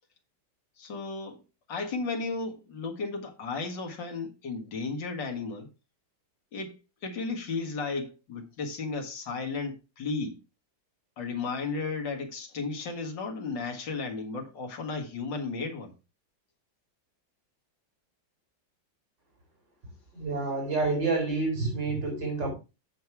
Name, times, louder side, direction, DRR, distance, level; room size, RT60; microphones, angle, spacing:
voice 1, 0.8-1.4 1.7-5.7 6.5-6.7 7.0-10.4 11.2-15.9, left 4 dB, 70° left, 2.5 m, -34 dB
voice 2, 20.1-22.5, right 3 dB, 65° right, 5.2 m, -28 dB
8.5 x 6.6 x 4.6 m
omnidirectional pair, 2.1 m